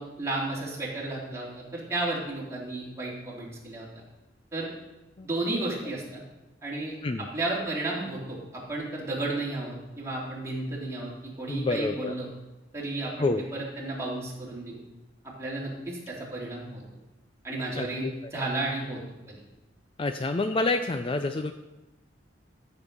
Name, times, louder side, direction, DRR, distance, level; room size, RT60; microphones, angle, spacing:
voice 1, 0.0-3.9 4.5-4.7 5.2-6.2 6.6-12.3 12.7-14.8 15.2-16.8 17.4-19.0 19.3-19.4, right 2 dB, 15° right, -5 dB, 3.1 m, -33 dB
voice 2, 11.5-12.1 13.2-13.4 17.8-18.3 20.0-21.5, left 2 dB, 30° left, 8 dB, 0.4 m, -28 dB
13.5 x 6.7 x 5.4 m, 1.0 s
head